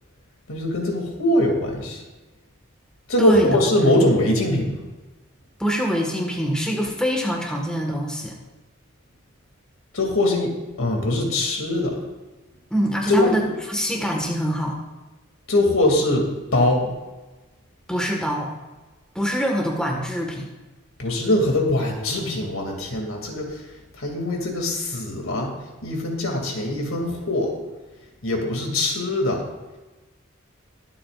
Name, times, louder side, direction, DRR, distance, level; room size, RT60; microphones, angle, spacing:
voice 1, 0.5-2.0 3.1-4.7 9.9-10.5 10.8-11.9 13.1-13.3 15.5-16.9 21.0-23.5 24.0-25.5 25.8-27.5 28.2-29.5, left 1 dB, 90° left, 1 dB, 2.5 m, -22 dB
voice 2, 3.2-3.9 5.6-8.4 12.7-14.7 17.9-18.5 19.1-20.5, equal, 5° left, 0 dB, 1.5 m, -24 dB
22.0 x 8.7 x 2.5 m, 1.2 s
head